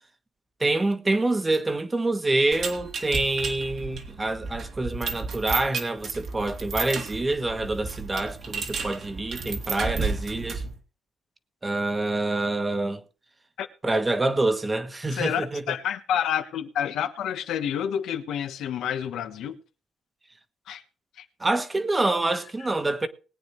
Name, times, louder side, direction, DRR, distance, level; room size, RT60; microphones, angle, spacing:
voice 1, 0.6-10.6 11.6-13.0 13.8-15.6 21.4-23.1, right 2 dB, 20° right, 1.5 m, -26 dB
sound 1, 2.5-10.8, right 4 dB, 60° right, 2.6 m, -33 dB
voice 2, 15.1-19.6 20.7-20.8 21.2-21.3, left 9 dB, 80° left, 1.3 m, -29 dB
20.5 x 9.0 x 3.2 m
cardioid pair, 90°, 0 cm